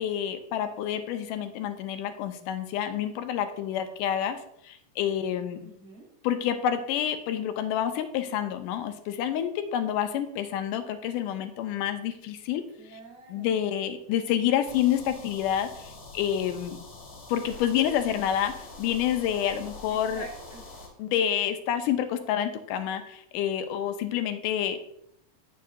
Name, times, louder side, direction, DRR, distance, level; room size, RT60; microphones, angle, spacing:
voice 1, 0.0-5.6 6.2-12.6 13.3-16.8 17.3-20.2 21.0-24.9, left 10 dB, 85° left, 8 dB, 2.1 m, -28 dB
voice 2, 5.6-6.1 12.8-13.5 19.9-20.7, right 3 dB, 65° right, -3 dB, 3.0 m, -46 dB
sound 1, 14.6-20.9, left 3 dB, 40° left, 2.8 m, -45 dB
9.3 x 7.2 x 2.6 m, 0.75 s
omnidirectional pair, 3.8 m